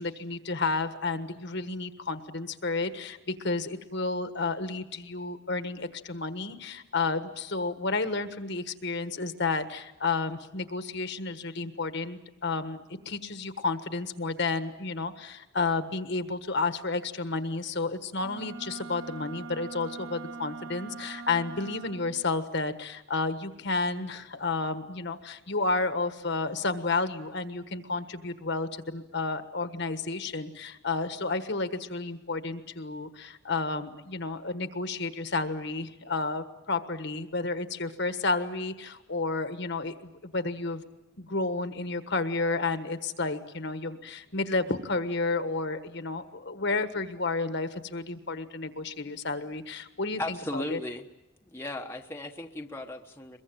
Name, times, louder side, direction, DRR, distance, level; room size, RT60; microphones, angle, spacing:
voice 1, 0.0-40.8 41.2-50.8, left 3 dB, 55° left, 9 dB, 1.4 m, -31 dB
Wind instrument woodwind instrument, 18.2-22.3, right 4 dB, 80° right, 1.0 m, -42 dB
voice 2, 50.2-51.1 51.4-53.4, left 1 dB, 10° left, 2 dB, 1.1 m, -36 dB
23.0 x 22.5 x 9.1 m, 0.94 s
head